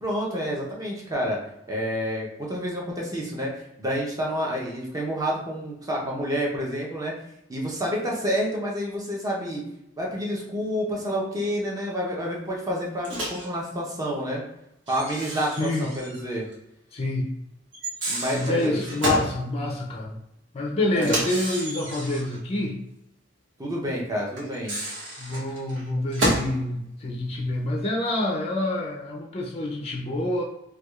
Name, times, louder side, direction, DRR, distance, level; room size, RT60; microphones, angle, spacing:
voice 1, 0.0-1.4 1.7-3.5 3.8-7.1 7.5-9.6 10.0-14.4 14.9-16.5 18.1-19.3 20.9-21.2 23.6-24.7, equal, 20° right, -2 dB, 0.8 m, -29 dB
Microwave oven, 13.0-13.5 14.9-16.2 16.5-16.6 17.7-19.3 21.0-22.4 24.4-26.6, right 1 dB, 85° right, 1.1 m, -30 dB
voice 2, 15.6-15.9 16.9-17.3 18.3-20.2 20.5-22.8 25.2-30.4, left 2 dB, 35° left, 0 dB, 0.5 m, -27 dB
4.7 x 2.3 x 2.3 m, 0.83 s
head